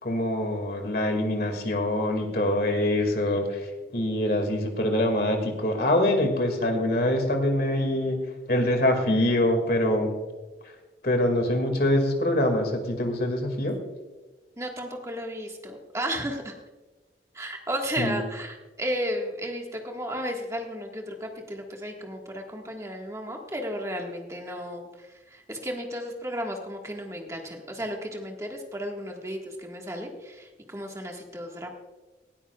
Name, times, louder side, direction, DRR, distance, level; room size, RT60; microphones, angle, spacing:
voice 1, 0.0-3.6 3.9-8.2 8.5-10.1 11.0-13.8 18.0-18.2, left 1 dB, 55° left, 5 dB, 2.1 m, -24 dB
voice 2, 14.6-16.5 17.3-31.7, equal, 15° right, 1 dB, 1.6 m, -34 dB
19.0 x 13.0 x 2.4 m, 1.2 s
head